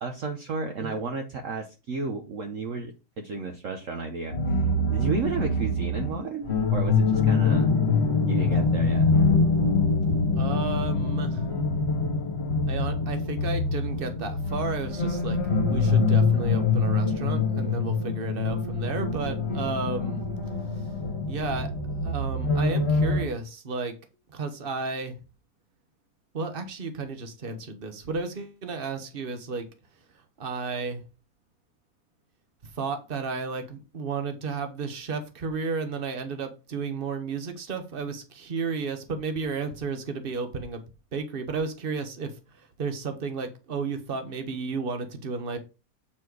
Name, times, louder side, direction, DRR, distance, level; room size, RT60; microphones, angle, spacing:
voice 1, 0.0-4.6 4.9-7.7 8.3-9.1, right 4 dB, 55° right, 1.2 m, -33 dB
sound 1, 4.3-23.2, left 3 dB, 40° left, 1.8 m, -24 dB
voice 2, 10.3-11.5 12.7-20.3 21.3-24.0 24.3-25.2 26.3-29.7 30.4-31.0 32.7-40.8 41.1-45.6, right 4 dB, 35° right, 1.3 m, -33 dB
8.6 x 4.4 x 4.7 m
omnidirectional pair, 1.8 m